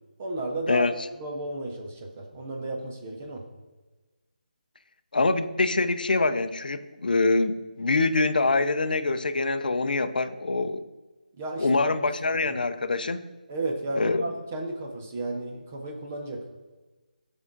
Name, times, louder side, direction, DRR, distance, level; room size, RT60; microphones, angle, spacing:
voice 1, 0.2-0.9 1.2-3.4 11.4-11.7 12.5-12.6 13.5-16.4, right 2 dB, 10° right, 1 dB, 0.3 m, -33 dB
voice 2, 5.1-10.8 11.6-13.2 14.0-14.3, left 3 dB, 65° left, 11 dB, 0.5 m, -25 dB
8.1 x 3.6 x 3.7 m, 1.2 s
hypercardioid pair, 175°, 5 cm